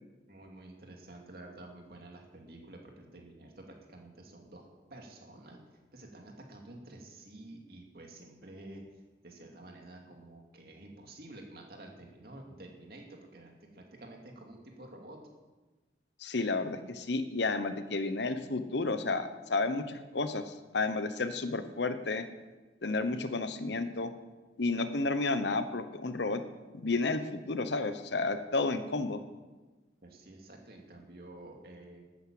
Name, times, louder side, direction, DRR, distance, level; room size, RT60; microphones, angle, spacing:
voice 1, 0.3-5.6 5.9-8.8 9.2-15.2 30.0-32.0, right 1 dB, 55° right, 1 dB, 2.5 m, -50 dB
voice 2, 16.2-22.2 22.8-24.1 24.6-26.4 26.7-29.2, left 3 dB, 75° left, 10 dB, 1.0 m, -31 dB
12.0 x 9.4 x 7.7 m, 1.2 s
head